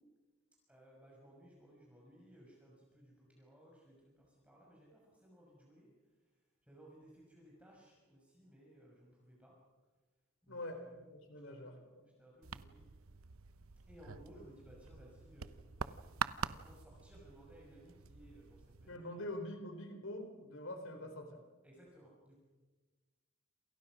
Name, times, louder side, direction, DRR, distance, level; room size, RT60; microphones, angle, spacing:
voice 1, 0.7-5.9 6.7-9.6 10.4-10.9 11.3-11.9 12.2-12.8 13.9-15.5 15.8-19.4 21.6-22.4, equal, 5° right, -3 dB, 6.0 m, -60 dB
voice 2, 10.5-12.1 18.9-21.4, left 1 dB, 65° left, 6 dB, 3.9 m, -45 dB
sound 1, 12.4-19.0, right 6 dB, 75° right, 0.9 m, -45 dB
28.5 x 28.0 x 6.3 m, 1.3 s
head